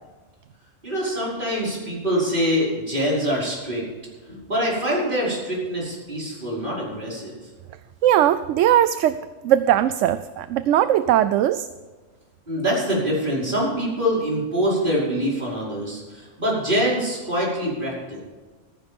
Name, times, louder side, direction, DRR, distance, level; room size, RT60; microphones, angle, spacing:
voice 1, 0.8-3.8 4.3-7.3 12.5-18.2, equal, 40° right, -5 dB, 5.8 m, -24 dB
voice 2, 8.0-9.2 9.4-11.7, right 11 dB, 75° right, 13 dB, 0.9 m, -19 dB
15.0 x 14.5 x 3.6 m, 1.4 s
omnidirectional pair, 1.3 m